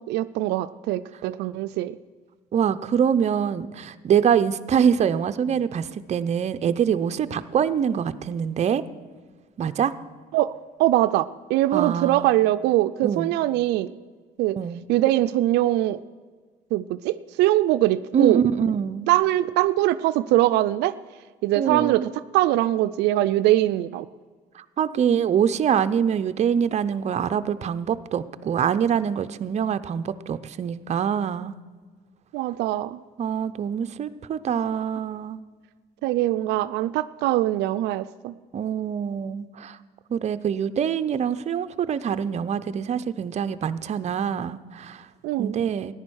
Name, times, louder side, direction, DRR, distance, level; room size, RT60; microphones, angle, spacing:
voice 1, 0.0-2.0 10.3-10.5 10.8-13.9 14.4-14.6 14.9-16.0 16.7-18.4 19.1-20.9 21.4-24.1 32.3-33.0 36.0-38.3 45.2-45.6, right 15 dB, 85° right, 12 dB, 0.4 m, -22 dB
voice 2, 2.5-8.8 9.6-9.9 11.7-12.4 13.0-13.3 14.6-14.8 18.1-19.1 21.6-22.1 24.5-31.5 33.2-35.4 38.5-39.8 40.1-45.1 45.4-45.9, right 8 dB, 40° right, 10 dB, 0.6 m, -24 dB
14.5 x 10.5 x 6.3 m, 1.5 s
cardioid pair, 110°, 17 cm